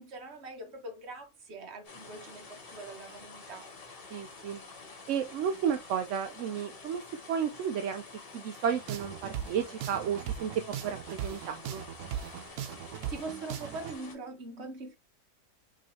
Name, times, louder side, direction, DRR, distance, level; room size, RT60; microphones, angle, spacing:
voice 1, 0.0-3.7 12.7-15.0, right 3 dB, 50° right, 1.3 m, -43 dB
sound 1, 1.8-14.2, left 3 dB, 40° left, 1.2 m, -49 dB
voice 2, 4.1-4.6 5.1-7.0 7.3-8.0 8.3-10.5 10.8-11.8, right 8 dB, 65° right, 0.8 m, -32 dB
sound 2, 8.7-13.9, right 10 dB, 85° right, 1.2 m, -39 dB
5.6 x 3.1 x 3.1 m
omnidirectional pair, 1.6 m